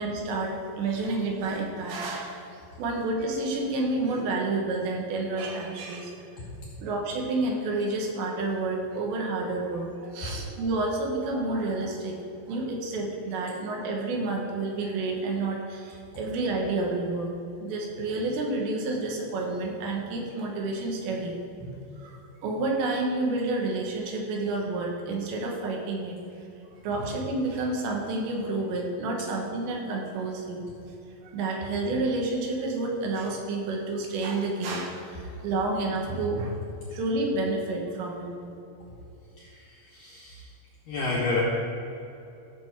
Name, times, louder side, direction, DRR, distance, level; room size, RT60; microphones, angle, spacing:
voice 1, 0.0-2.5 2.8-6.1 6.8-12.1 12.5-17.3 17.6-21.7 22.0-26.2 26.8-30.7 31.2-36.6 36.9-38.3, right 2 dB, 70° right, 0 dB, 3.4 m, -29 dB
voice 2, 39.4-40.5 40.9-41.4, left 3 dB, 75° left, -5 dB, 2.1 m, -30 dB
15.0 x 7.0 x 4.7 m, 2.8 s
omnidirectional pair, 5.5 m